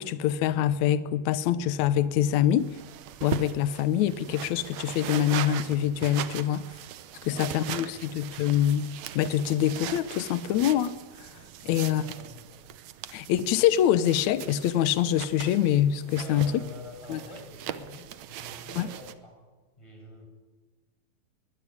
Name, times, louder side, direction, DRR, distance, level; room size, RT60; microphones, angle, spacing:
voice 1, 0.0-2.8 3.2-6.6 7.2-8.9 9.1-11.0 11.7-12.0 13.1-16.6 17.1-17.2 18.8-18.9, left 11 dB, 70° left, 14 dB, 1.7 m, -25 dB
sound 1, 2.6-19.1, right 11 dB, 80° right, 1.6 m, -40 dB
voice 2, 7.2-8.1 11.6-12.7 16.2-19.4 19.8-20.3, left 2 dB, 5° left, 2 dB, 5.7 m, -46 dB
22.5 x 16.5 x 9.7 m, 1.3 s
omnidirectional pair, 4.5 m